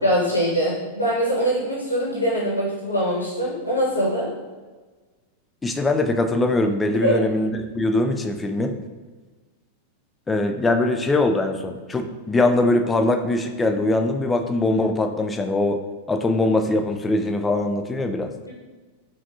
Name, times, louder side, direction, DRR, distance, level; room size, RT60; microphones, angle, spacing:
voice 1, 0.0-4.3 7.0-7.2, equal, 80° left, -5 dB, 0.9 m, -23 dB
voice 2, 5.6-8.8 10.3-15.8 16.1-18.3, left 2 dB, 15° left, 5 dB, 0.4 m, -22 dB
5.8 x 2.3 x 2.7 m, 1.3 s
figure-of-eight pair, 90°, 0 cm